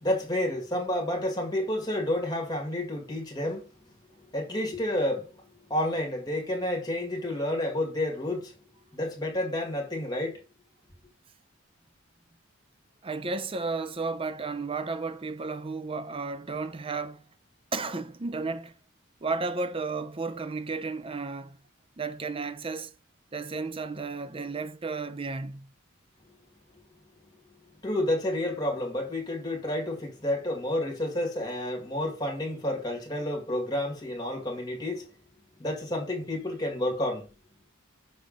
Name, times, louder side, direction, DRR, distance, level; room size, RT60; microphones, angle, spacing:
voice 1, 0.0-3.7 4.3-5.3 5.7-8.5 8.9-10.4 27.8-35.1 35.6-37.3, left 1 dB, 20° left, 2.0 m, -30 dB
voice 2, 13.0-17.2 17.7-18.7 19.2-21.6 22.0-22.9 23.3-25.7, right 4 dB, 25° right, 0.5 m, -33 dB
6.5 x 3.4 x 5.0 m
head